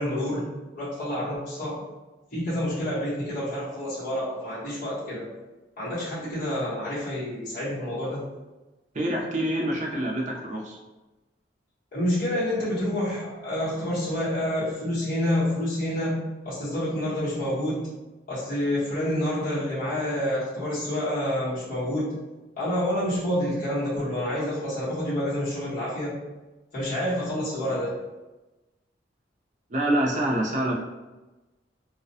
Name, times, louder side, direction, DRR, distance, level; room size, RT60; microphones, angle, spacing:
voice 1, 0.0-1.9 2.3-5.3 5.8-8.2 11.9-17.9 18.3-22.3 22.6-26.2 26.7-27.9, left 1 dB, 50° left, -11 dB, 1.1 m, -28 dB
voice 2, 8.9-10.8 29.7-30.8, right 1 dB, 40° right, -2 dB, 0.5 m, -26 dB
2.3 x 2.1 x 2.7 m, 1.1 s
head